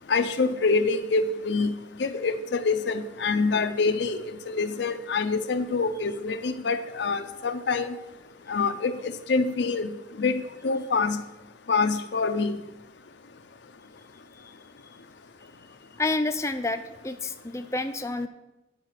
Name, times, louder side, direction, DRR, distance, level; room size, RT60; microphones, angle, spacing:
voice 1, 0.1-1.7 2.0-7.9 8.5-11.2 11.7-12.6, left 4 dB, 85° left, 8 dB, 0.6 m, -26 dB
voice 2, 16.0-18.3, left 2 dB, 15° left, 7 dB, 0.4 m, -29 dB
9.1 x 4.8 x 6.4 m, 0.93 s
head